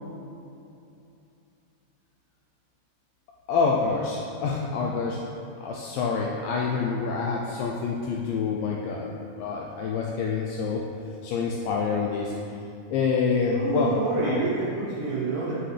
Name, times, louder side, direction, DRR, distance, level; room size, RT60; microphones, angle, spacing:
voice 1, 3.5-5.2 5.6-10.8 11.2-12.3 12.9-14.5, left 5 dB, 85° left, -1 dB, 2.0 m, -27 dB
voice 2, 13.6-15.5, right 3 dB, 80° right, -7 dB, 1.8 m, -28 dB
7.7 x 5.8 x 3.3 m, 2.7 s
omnidirectional pair, 4.5 m